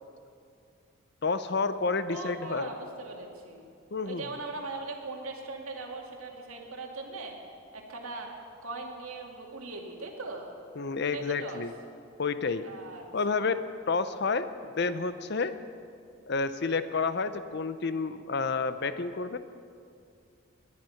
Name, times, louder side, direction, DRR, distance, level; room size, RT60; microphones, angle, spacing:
voice 1, 1.2-2.7 3.9-4.2 10.8-11.7 12.2-12.6 13.1-15.5 16.3-19.4, left 4 dB, 50° left, 12 dB, 0.6 m, -30 dB
voice 2, 2.1-3.7 4.0-7.3 7.7-8.3 8.6-10.5 11.1-11.6 12.6-13.6, right 3 dB, 85° right, 1 dB, 2.2 m, -40 dB
19.0 x 10.5 x 5.8 m, 2.4 s
head